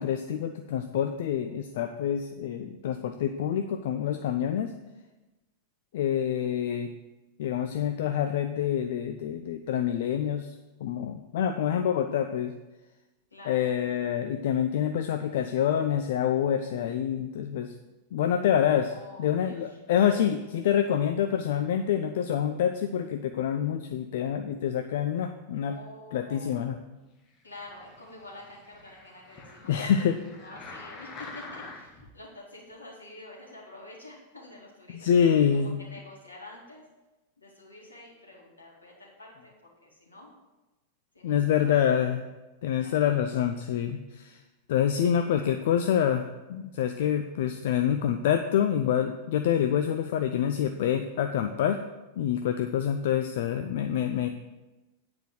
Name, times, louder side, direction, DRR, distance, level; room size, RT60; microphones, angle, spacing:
voice 1, 0.0-4.7 5.9-6.9 7.4-10.5 10.8-12.5 13.5-17.7 18.1-18.9 19.2-25.8 26.1-26.8 29.7-30.2 34.9-35.8 41.2-42.2 42.6-44.4 44.7-46.2 46.5-51.8 52.2-54.3, left 9 dB, 55° left, 7 dB, 0.5 m, -26 dB
voice 2, 13.3-13.7 18.9-19.8 20.6-20.8 25.6-26.7 27.4-30.0 30.3-36.9 37.4-40.3 41.1-41.9 42.8-43.5 45.2-45.5, left 2 dB, 75° left, -3 dB, 2.8 m, -48 dB
sound 1, 27.5-32.1 32.7-32.8, left 3 dB, 30° left, 1.5 m, -46 dB
9.0 x 4.9 x 7.7 m, 1.1 s
figure-of-eight pair, 90°, 0 cm